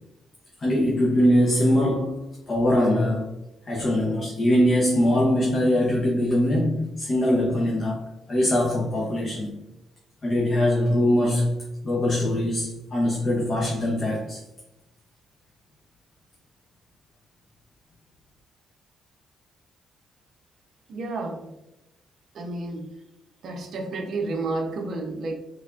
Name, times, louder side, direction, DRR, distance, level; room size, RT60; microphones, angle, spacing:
voice 1, 0.6-3.3 3.6-8.0 8.3-9.6 10.2-11.6 11.8-14.4, left 1 dB, 40° left, -2 dB, 0.7 m, -22 dB
voice 2, 20.9-21.5 22.3-22.9 23.4-25.3, right 2 dB, 60° right, 4 dB, 0.6 m, -30 dB
3.6 x 3.3 x 2.4 m, 0.92 s
cardioid pair, 90°, 0 cm